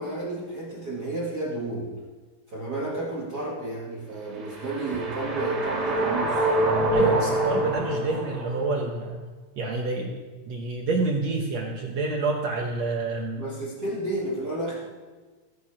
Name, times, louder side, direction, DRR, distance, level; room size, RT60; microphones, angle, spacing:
voice 1, 0.0-1.9 2.5-6.5 13.4-14.8, right 2 dB, 55° right, -3 dB, 1.0 m, -32 dB
sound 1, 4.3-8.7, right 1 dB, 40° right, 1.6 m, -25 dB
voice 2, 6.9-9.2 9.6-13.4, right 3 dB, 75° right, 1 dB, 1.6 m, -28 dB
18.0 x 6.8 x 4.8 m, 1.3 s
omnidirectional pair, 4.4 m